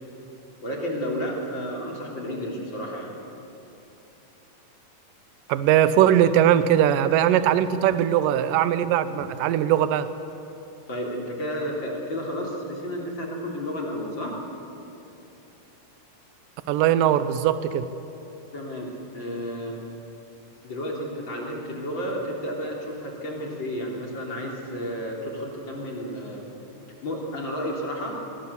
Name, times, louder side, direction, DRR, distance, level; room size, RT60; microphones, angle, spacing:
voice 1, 0.6-3.1 10.9-14.4 18.5-19.8 20.6-26.4 27.0-28.2, equal, 35° left, -1 dB, 3.7 m, -32 dB
voice 2, 5.5-10.1 16.7-17.8, right 10 dB, 80° right, 13 dB, 2.4 m, -20 dB
25.0 x 20.5 x 7.1 m, 2.9 s
omnidirectional pair, 3.9 m